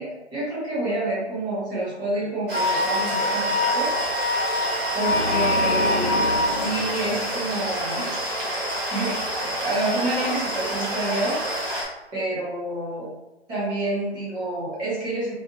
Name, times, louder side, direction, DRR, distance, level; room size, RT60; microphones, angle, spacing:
voice 1, 0.0-3.9 4.9-8.1 8.9-11.4 12.1-13.1 13.5-15.4, right 2 dB, 15° right, -8 dB, 0.9 m, -28 dB
sound 1, 2.5-11.8, right 1 dB, 50° right, 1.3 m, -28 dB
Wind instrument woodwind instrument, 2.5-6.5, left 2 dB, 75° right, 0.9 m, -25 dB
Organ, 5.0-8.2, left 2 dB, 85° left, 0.6 m, -30 dB
2.6 x 2.1 x 3.0 m, 0.99 s
figure-of-eight pair, 140°, 34 cm